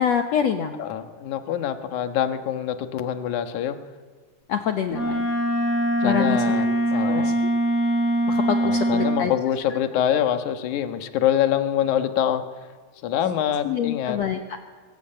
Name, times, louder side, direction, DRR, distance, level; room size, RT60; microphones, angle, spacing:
voice 1, 0.0-0.8 4.5-5.3 6.0-6.8 7.0-7.3 8.3-9.3 13.6-14.6, left 8 dB, 90° left, 6 dB, 1.4 m, -26 dB
voice 2, 0.8-3.8 6.0-7.4 8.6-12.4 13.0-14.2, left 10 dB, 60° left, 8 dB, 2.3 m, -25 dB
Wind instrument woodwind instrument, 4.9-9.3, right 1 dB, 20° left, 5.8 m, -22 dB
23.0 x 19.0 x 8.9 m, 1.5 s
omnidirectional pair, 4.6 m